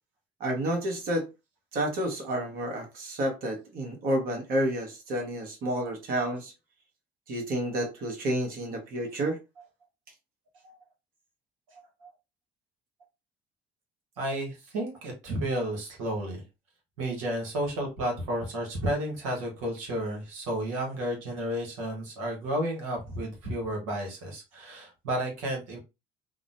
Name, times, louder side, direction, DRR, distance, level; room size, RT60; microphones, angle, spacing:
voice 1, 0.4-1.3 1.7-6.5 7.3-9.4, right 1 dB, 65° right, 1.2 m, -30 dB
voice 2, 14.2-16.4 17.0-25.8, right 1 dB, 85° right, 1.2 m, -32 dB
3.6 x 2.0 x 2.6 m
hypercardioid pair, 65°, 16 cm